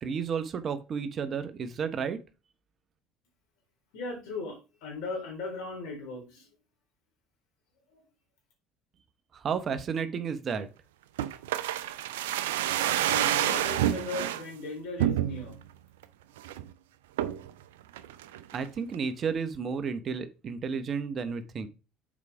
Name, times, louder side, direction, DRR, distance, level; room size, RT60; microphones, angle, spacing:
voice 1, 0.0-2.2 9.3-10.7 18.5-21.7, right 6 dB, 45° right, 11 dB, 1.0 m, -32 dB
voice 2, 3.9-6.5 7.9-8.1 13.0-15.6, left 3 dB, 70° left, 1 dB, 4.0 m, -37 dB
sound 1, 11.2-14.4 15.0-15.6 16.0-16.1 16.4-16.7 17.2-17.5 18.0-18.7 18.9-19.0, right 12 dB, 80° right, 0.5 m, -28 dB
7.3 x 4.8 x 4.8 m, 0.30 s
hypercardioid pair, 70°, 0 cm